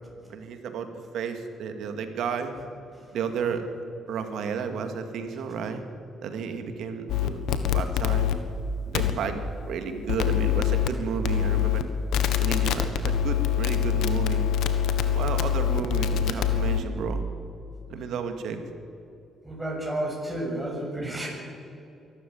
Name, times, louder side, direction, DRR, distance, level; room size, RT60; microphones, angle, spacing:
voice 1, 0.3-0.9 1.1-2.5 3.1-3.7 4.1-5.8 6.2-8.3 8.9-11.9 12.4-14.4 15.1-17.2 17.9-18.6, right 6 dB, 75° right, 7 dB, 2.3 m, -32 dB
sound 1, 7.1-8.3 8.9-9.1 10.1-10.9 11.3-11.8 12.1-16.8, left 9 dB, 85° left, 1.4 m, -24 dB
voice 2, 19.4-21.3, right 1 dB, 15° right, 0 dB, 7.1 m, -31 dB
23.0 x 13.0 x 9.6 m, 2.6 s
cardioid pair, 90°, 0 cm